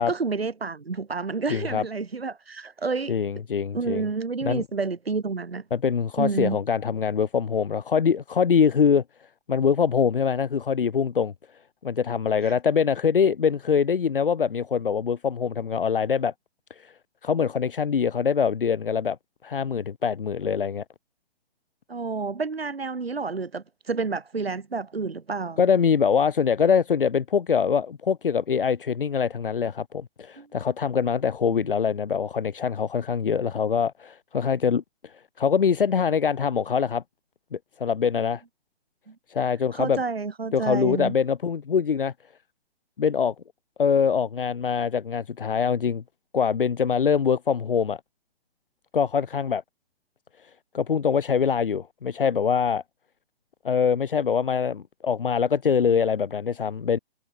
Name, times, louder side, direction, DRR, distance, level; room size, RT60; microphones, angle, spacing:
voice 1, 0.0-3.1 3.7-5.6 6.2-6.6 12.4-12.6 21.9-25.6 30.4-30.5 31.5-31.6 39.1-39.2 39.7-41.1, right 4 dB, 70° right, 7.8 m, -29 dB
voice 2, 1.5-1.8 3.1-4.0 4.4-4.6 5.7-9.0 9.5-11.3 11.8-16.3 16.8-16.9 17.2-19.2 19.4-20.8 25.6-37.0 37.5-38.4 39.3-40.0 40.5-42.1 43.0-43.3 43.8-46.0 46.3-48.0 48.9-49.6 50.7-52.8 53.6-57.0, left 6 dB, 55° left, 3.1 m, -24 dB
figure-of-eight pair, 130°, 32 cm